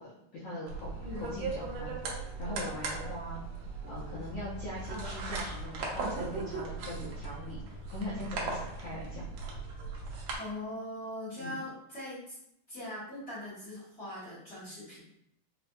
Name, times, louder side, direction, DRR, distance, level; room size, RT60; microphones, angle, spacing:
voice 1, 0.0-3.4 3.9-9.2 11.4-11.6, left 1 dB, 80° left, -8 dB, 1.3 m, -41 dB
sound 1, 0.7-10.4, right 3 dB, 75° right, 1.7 m, -38 dB
voice 2, 1.0-1.3 10.4-12.4 12.7-15.0, left 1 dB, 45° left, -12 dB, 1.0 m, -41 dB
5.0 x 2.1 x 2.5 m, 0.77 s
omnidirectional pair, 3.7 m